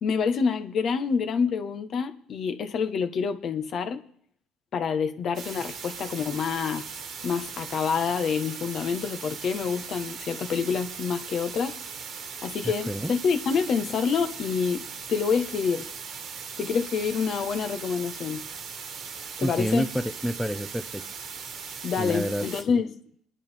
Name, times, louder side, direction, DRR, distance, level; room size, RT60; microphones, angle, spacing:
voice 1, 0.0-4.0 4.7-6.8 7.2-11.7 12.4-15.9 16.6-18.4 19.4-19.9 21.8-23.0, left 6 dB, 55° left, 8 dB, 1.3 m, -27 dB
sound 1, 5.3-22.6, right 6 dB, 60° right, 1.8 m, -39 dB
voice 2, 19.4-21.0 22.0-22.8, equal, ahead, 8 dB, 0.7 m, -29 dB
23.5 x 10.5 x 3.5 m, 0.64 s
cardioid pair, 95°, 0 cm